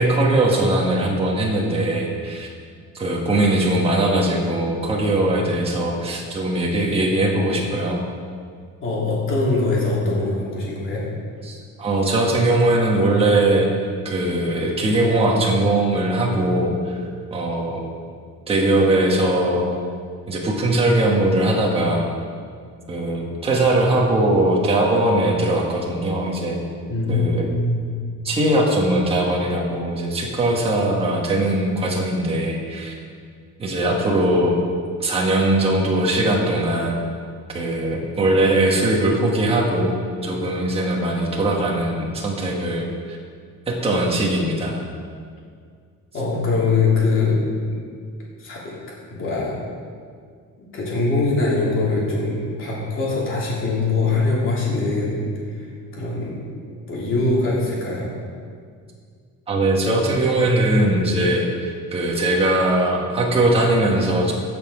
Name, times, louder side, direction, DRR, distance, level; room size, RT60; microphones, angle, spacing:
voice 1, 0.0-2.5 2.9-8.0 11.4-13.7 14.0-16.9 17.3-17.8 18.5-19.7 20.3-22.1 22.9-26.6 27.1-27.5 28.2-32.9 33.6-34.6 35.0-37.0 37.5-39.9 40.2-43.2 43.7-44.8 59.5-64.3, right 1 dB, 20° right, -2 dB, 1.4 m, -20 dB
voice 2, 8.8-11.0 26.9-27.9 46.1-47.4 47.7-47.8 48.4-48.8 49.1-49.6 50.6-55.7 55.9-56.4 56.9-58.1, left 3 dB, 40° left, -5 dB, 3.0 m, -22 dB
16.5 x 5.9 x 4.9 m, 2.1 s
cardioid pair, 180°, 31 cm